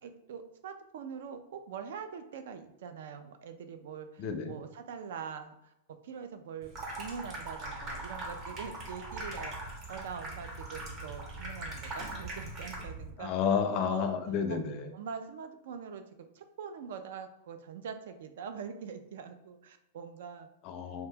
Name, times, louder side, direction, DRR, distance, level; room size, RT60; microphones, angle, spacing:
voice 1, 0.0-13.4 13.9-14.2 14.5-14.6 14.9-20.5, right 6 dB, 70° right, 8 dB, 0.3 m, -43 dB
voice 2, 4.2-4.6 13.2-14.9 20.6-21.1, left 6 dB, 35° left, 6 dB, 0.4 m, -31 dB
Water tap faucet / Sink (filling or washing), 6.6-13.1, right 2 dB, 30° right, 0.7 m, -41 dB
2.8 x 2.1 x 3.3 m, 0.83 s
supercardioid pair, 155°, 0 cm